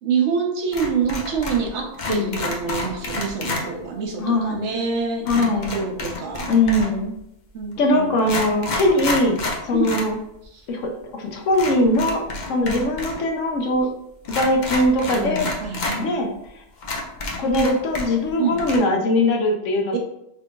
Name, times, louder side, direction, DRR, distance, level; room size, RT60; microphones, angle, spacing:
voice 1, 0.0-6.5 7.5-8.1 9.7-9.9 10.4-10.7 15.1-16.2 18.4-18.6 19.9-20.0, right 5 dB, 65° right, 1 dB, 0.9 m, -26 dB
sound 1, 0.7-1.7 1.9-3.7 5.3-7.0 7.7-7.8 8.2-10.1 10.4-10.5 11.5-13.2 13.5-13.6 14.2-16.0 16.4-16.5 16.8-18.3 18.6-18.8, left 2 dB, 50° left, 0.5 m, -29 dB
voice 2, 4.2-4.6 5.3-5.7 6.5-7.1 7.8-9.4 9.6-10.2 10.7-12.2 12.5-13.9 14.3-15.5 16.0-16.3 17.4-20.0, left 1 dB, 70° left, 2 dB, 1.0 m, -21 dB
3.7 x 3.6 x 2.2 m, 0.83 s
omnidirectional pair, 1.4 m